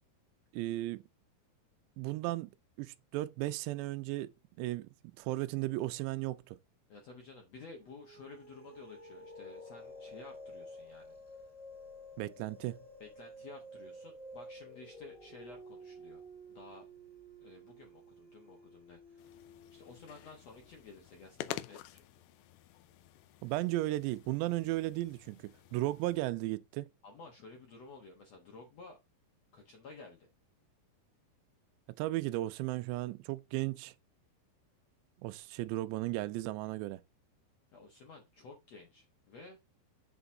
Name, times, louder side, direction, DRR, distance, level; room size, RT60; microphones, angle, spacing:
voice 1, 0.5-1.0 2.0-2.5 2.8-4.3 4.6-4.9 5.2-6.6 12.2-12.8 23.4-26.9 32.0-33.9 35.2-37.0, right 17 dB, 90° right, 2.8 m, -35 dB
voice 2, 6.9-11.2 13.0-16.2 16.5-16.9 17.4-19.4 19.7-22.0 27.0-29.0 29.5-30.3 37.7-39.6, left 3 dB, 65° left, 1.7 m, -53 dB
sound 1, 7.8-20.6, equal, 10° left, 3.0 m, -52 dB
sound 2, 19.2-26.2, left 13 dB, 90° left, 2.0 m, -49 dB
8.0 x 5.9 x 3.8 m
omnidirectional pair, 4.9 m